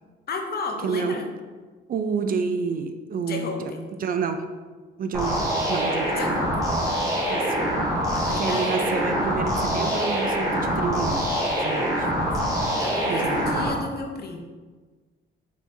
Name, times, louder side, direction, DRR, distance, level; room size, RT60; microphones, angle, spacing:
voice 1, 0.3-1.3 3.3-3.9 6.1-6.6 7.8-8.8 12.8-14.4, left 3 dB, 50° left, 3 dB, 0.7 m, -33 dB
voice 2, 0.8-1.2 1.9-3.7 4.0-4.4 5.0-6.2 7.3-7.6 8.4-12.3 13.1-13.5, right 5 dB, 45° right, 7 dB, 0.4 m, -29 dB
sound 1, 5.1-13.7, equal, 15° right, 1.4 m, -25 dB
4.3 x 3.5 x 2.7 m, 1.4 s
cardioid pair, 90°, 20 cm